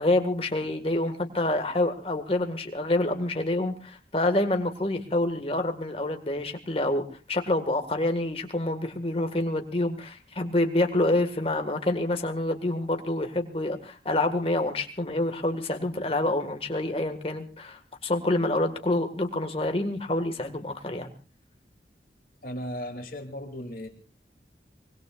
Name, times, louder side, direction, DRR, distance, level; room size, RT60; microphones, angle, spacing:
voice 1, 0.0-21.1, left 1 dB, 35° left, 5 dB, 1.8 m, -27 dB
voice 2, 22.4-23.9, equal, 50° left, 3 dB, 2.8 m, -36 dB
24.5 x 21.0 x 2.5 m, 0.35 s
head